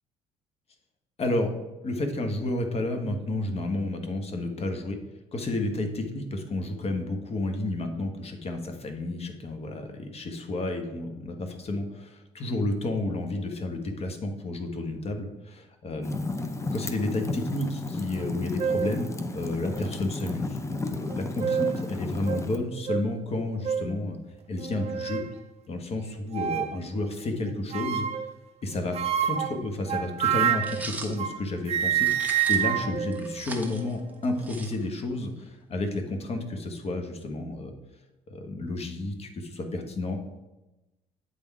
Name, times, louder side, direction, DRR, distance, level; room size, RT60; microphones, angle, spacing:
voice 1, 1.2-1.5 1.8-5.0 5.3-16.2 16.7-24.2 24.5-25.2 25.7-28.1 28.6-32.1 32.5-37.7 38.3-40.2, left 2 dB, 40° left, 5 dB, 1.3 m, -31 dB
Fire, 16.0-22.6, left 2 dB, 20° left, 0.7 m, -33 dB
sound 1, 18.2-18.3 18.6-19.0 19.7-19.8 21.1-21.8 22.3-22.4 22.9-23.0 23.6-23.9 24.6-25.3 26.3-26.8 27.7-28.3 28.9-31.4 31.7-34.0, right 9 dB, 45° right, 0.6 m, -28 dB
sound 2, 30.6-31.2 32.0-32.7 33.1-35.1, right 2 dB, 10° right, 1.2 m, -39 dB
8.3 x 3.6 x 4.7 m, 1.0 s
supercardioid pair, 70°, 15 cm